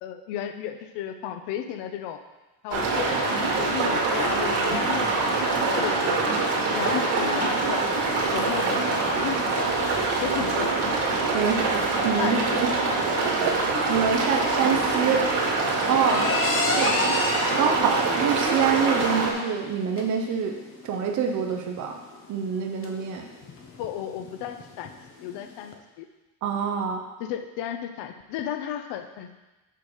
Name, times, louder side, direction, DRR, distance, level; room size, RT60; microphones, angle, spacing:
voice 1, 0.0-2.2 2.6-5.4 5.8-6.3 6.7-7.9 8.3-9.4 9.9-10.7 12.2-12.6 16.3-16.4 23.8-24.9 25.2-26.1 27.2-29.3, left 10 dB, 75° left, 8 dB, 0.8 m, -33 dB
sound 1, 2.7-19.3, right 3 dB, 85° right, 2.2 m, -24 dB
sound 2, 7.1-25.7, left 3 dB, 30° left, 0.8 m, -34 dB
voice 2, 11.3-12.7 13.2-15.2 15.9-16.2 16.7-16.9 17.6-20.5 20.8-22.0 22.3-23.2 26.4-27.0, right 7 dB, 45° right, 3 dB, 0.9 m, -26 dB
6.7 x 6.0 x 4.9 m, 1.1 s
cardioid pair, 175°, 41 cm